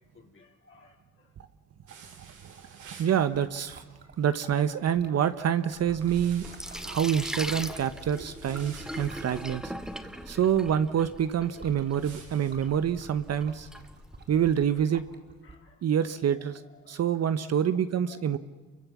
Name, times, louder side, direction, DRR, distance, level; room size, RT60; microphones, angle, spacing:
voice 1, 0.1-1.3 2.3-2.4 5.9-6.1 9.3-9.7 15.4-15.8 16.7-17.0 17.6-17.8 18.1-18.2, left 4 dB, 40° left, 0 dB, 3.4 m, -58 dB
sound 1, 1.9-3.2 5.9-10.0 11.9-12.5, right 5 dB, 80° right, 5.8 m, -51 dB
voice 2, 2.2-2.6 3.0-3.8 4.2-6.4 6.8-9.7 10.3-13.7 14.3-15.0 15.8-16.6 16.9-18.4, right 9 dB, 55° right, 11 dB, 1.1 m, -27 dB
Liquid, 2.4-15.5, right 3 dB, 35° right, 4.3 m, -53 dB
Sink (filling or washing), 5.8-14.6, equal, ahead, 2.1 m, -41 dB
28.0 x 24.0 x 7.4 m, 1.3 s
cardioid pair, 90°, 30 cm